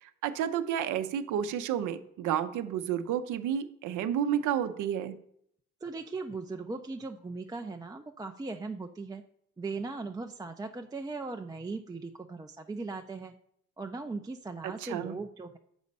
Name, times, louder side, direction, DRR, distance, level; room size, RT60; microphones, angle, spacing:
voice 1, 0.0-5.2 14.6-15.2, right 9 dB, 85° right, 10 dB, 0.6 m, -31 dB
voice 2, 5.8-9.2 9.6-13.3 13.8-15.6, right 3 dB, 15° right, 4 dB, 0.3 m, -38 dB
7.1 x 4.2 x 5.3 m, 0.70 s
cardioid pair, 90°, 30 cm